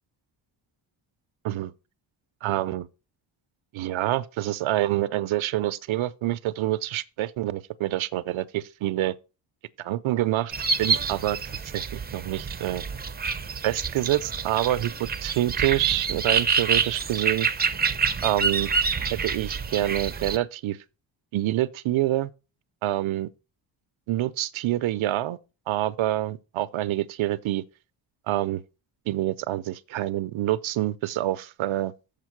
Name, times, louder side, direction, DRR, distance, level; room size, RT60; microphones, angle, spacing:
voice 1, 2.4-2.9 3.7-9.1 9.8-10.5 10.8-11.4 11.7-12.8 13.6-17.5 18.2-18.7 19.1-20.8 21.3-22.3 22.8-23.3 24.1-25.4 25.7-27.6 28.3-28.6 29.1-31.9, right 14 dB, 80° right, 0.6 m, -26 dB
sound 1, 10.5-20.4, right 5 dB, 20° right, 0.5 m, -27 dB
7.4 x 5.1 x 6.0 m
wide cardioid pair, 170°, 48 cm